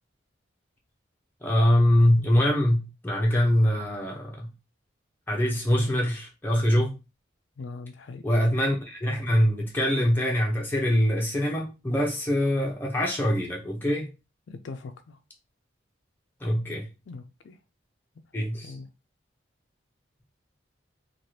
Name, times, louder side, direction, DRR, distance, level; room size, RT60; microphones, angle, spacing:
voice 1, 1.4-4.5 5.3-7.0 8.2-14.1 16.4-16.9 18.3-18.7, equal, 10° left, 0.7 m, -24 dB
voice 2, 7.6-8.2 14.5-15.2 17.1-17.6 18.6-18.9, left 3 dB, 70° left, 0.3 m, -41 dB
2.8 x 2.4 x 3.1 m
head